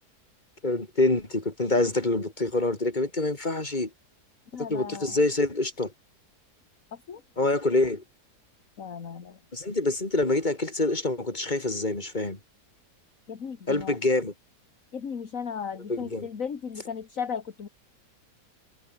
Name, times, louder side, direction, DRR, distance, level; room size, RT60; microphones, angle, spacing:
voice 1, 0.6-3.9 4.6-5.9 7.4-8.0 9.5-12.4 13.7-14.3 15.9-16.3, left 2 dB, 25° left, 3.8 m, -26 dB
voice 2, 4.5-5.2 6.9-7.2 8.8-9.4 13.3-14.0 14.9-17.7, left 6 dB, 55° left, 2.0 m, -36 dB
omnidirectional pair, 1.8 m